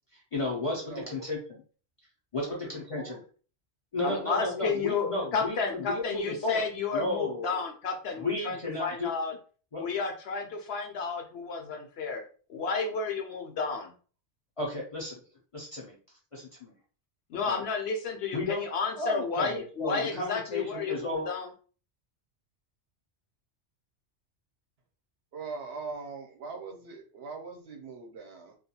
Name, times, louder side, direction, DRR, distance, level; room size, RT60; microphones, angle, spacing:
voice 1, 0.1-1.6 2.3-3.2 3.9-6.6 6.9-7.6 8.2-9.1 9.7-9.8 14.6-15.2 15.5-16.0 16.3-16.7 17.5-17.6 18.3-18.6 19.0-21.3, left 2 dB, 45° left, -4 dB, 0.5 m, -33 dB
voice 2, 0.8-1.1 2.3-3.2 4.0-4.3 4.5-4.7 25.3-28.6, right 4 dB, 70° right, 2 dB, 0.8 m, -41 dB
voice 3, 4.0-9.3 9.8-12.2 12.5-13.9 17.3-21.5, left 4 dB, 70° left, 3 dB, 0.8 m, -32 dB
2.3 x 2.2 x 2.7 m, 0.39 s
omnidirectional pair, 1.2 m